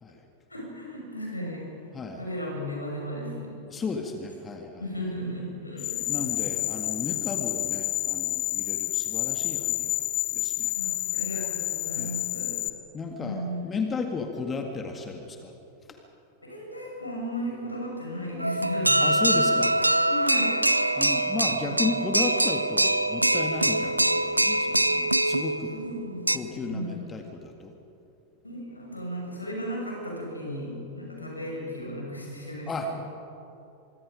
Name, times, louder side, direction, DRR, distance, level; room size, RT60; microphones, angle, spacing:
voice 1, 0.5-1.7 2.2-3.6 4.8-6.6 10.7-12.6 13.2-13.6 16.4-19.6 20.1-20.6 21.6-21.8 25.7-27.1 28.4-32.7, equal, 85° left, -1 dB, 6.3 m, -35 dB
voice 2, 3.7-4.9 6.1-10.0 10.3-10.7 12.0-12.2 12.9-15.5 19.0-19.7 20.9-25.8 26.3-27.7 32.7-33.0, left 4 dB, 20° left, 4 dB, 1.9 m, -34 dB
sound 1, 5.8-12.7, left 17 dB, 40° left, 1.1 m, -29 dB
sound 2, 18.4-26.4, right 1 dB, 85° right, 0.5 m, -24 dB
25.0 x 23.5 x 5.2 m, 2.8 s
figure-of-eight pair, 90°, 0 cm